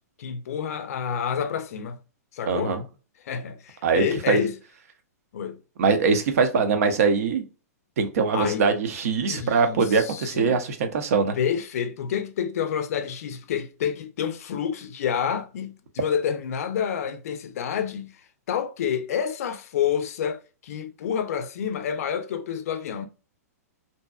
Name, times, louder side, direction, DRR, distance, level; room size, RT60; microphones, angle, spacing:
voice 1, 0.2-2.0 2.3-2.8 3.2-4.5 5.3-5.6 8.3-8.6 9.3-10.6 11.3-18.2 18.5-23.1, left 8 dB, 65° left, 0.4 m, -28 dB
voice 2, 2.5-2.8 3.8-4.4 5.8-7.4 8.0-11.3, right 5 dB, 65° right, 0.6 m, -22 dB
2.7 x 2.2 x 2.2 m
hypercardioid pair, 130°, 9 cm